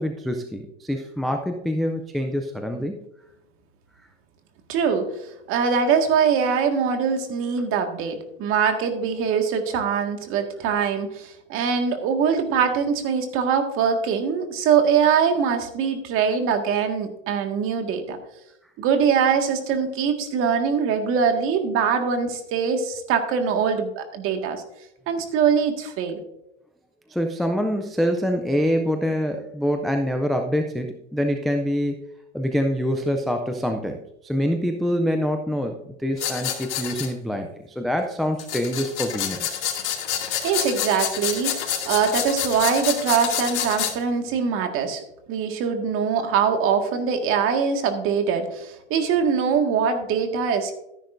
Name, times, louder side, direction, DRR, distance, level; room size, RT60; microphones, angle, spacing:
voice 1, 0.0-3.0 27.1-32.0 32.3-39.6, equal, ahead, 4 dB, 0.3 m, -25 dB
voice 2, 4.7-5.1 5.5-18.2 18.8-24.6 25.1-26.2 40.4-45.0 45.3-50.7, right 6 dB, 40° right, 5 dB, 1.8 m, -23 dB
sound 1, 36.2-37.1 38.4-43.9, left 9 dB, 70° left, 2.4 m, -28 dB
12.5 x 10.5 x 2.6 m, 0.83 s
hypercardioid pair, 130°, 35 cm